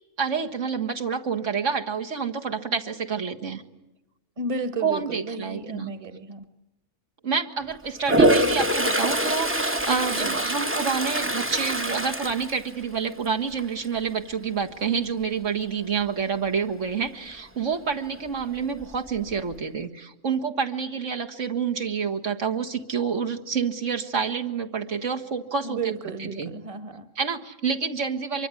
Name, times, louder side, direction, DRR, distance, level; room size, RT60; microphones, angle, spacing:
voice 1, 0.2-3.6 4.8-5.9 7.2-25.8 26.2-26.5 27.2-28.5, right 6 dB, 70° right, 2.0 m, -28 dB
voice 2, 4.4-6.5 10.1-10.4 25.6-27.1, right 3 dB, 25° right, 1.4 m, -33 dB
Toilet flush, 8.0-13.2 13.6-14.0 18.4-18.5 18.8-19.5, right 1 dB, 10° right, 0.8 m, -24 dB
24.5 x 23.5 x 9.8 m
omnidirectional pair, 1.3 m